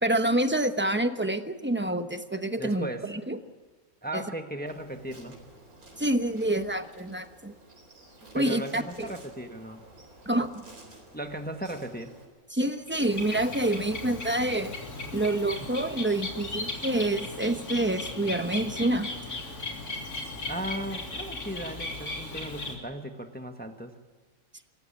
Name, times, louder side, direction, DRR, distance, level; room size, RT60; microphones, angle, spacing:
voice 1, 0.0-3.4 4.1-4.2 6.0-7.5 8.3-9.1 10.3-10.6 12.5-14.8 15.1-19.1, right 1 dB, 10° right, 8 dB, 0.8 m, -27 dB
voice 2, 2.6-3.1 4.0-5.4 8.3-9.8 11.1-12.1 20.4-24.0, right 1 dB, 5° left, 6 dB, 1.2 m, -36 dB
Insect, 4.7-12.3, right 2 dB, 70° right, 4.5 m, -52 dB
Bird, 12.7-22.7, left 2 dB, 85° left, 3.9 m, -37 dB
26.5 x 15.0 x 8.6 m, 1.4 s
omnidirectional pair, 1.6 m